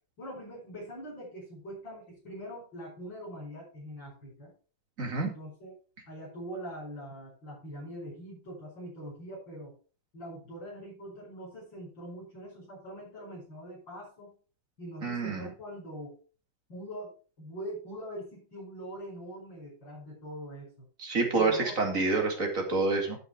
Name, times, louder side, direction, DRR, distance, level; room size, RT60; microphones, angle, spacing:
voice 1, 0.2-4.5 5.2-5.7 6.1-9.7 10.1-14.4 14.8-16.2 16.7-20.7 21.3-22.0, equal, 85° left, -7 dB, 6.7 m, -43 dB
voice 2, 5.0-5.3 15.0-15.5 21.0-23.2, right 3 dB, 45° right, 2 dB, 3.0 m, -28 dB
12.5 x 5.9 x 4.8 m, 0.37 s
omnidirectional pair, 2.0 m